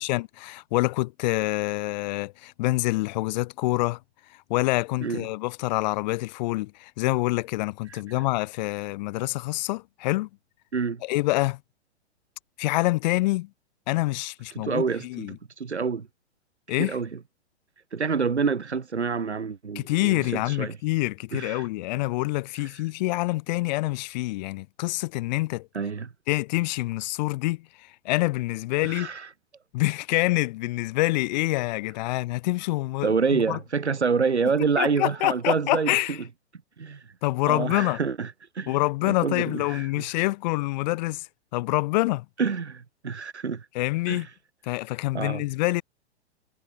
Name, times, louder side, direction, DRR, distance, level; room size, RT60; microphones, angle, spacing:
voice 1, 0.0-4.0 4.5-10.3 11.0-11.6 12.6-13.5 13.9-15.4 16.7-17.0 19.8-25.7 26.3-29.1 29.7-33.6 34.6-36.2 37.2-38.0 38.7-41.3 41.5-42.3 43.7-44.3 44.6-45.8, left 20 dB, 40° left, 1.8 m, -26 dB
voice 2, 10.7-11.0 14.5-16.1 16.8-17.1 17.9-20.7 21.3-21.6 25.7-26.1 28.8-29.3 33.0-36.2 36.8-37.0 37.5-38.8 39.1-39.9 42.4-43.7 44.1-44.3 45.1-45.4, right 5 dB, 80° right, 2.3 m, -27 dB
figure-of-eight pair, 110°, 33 cm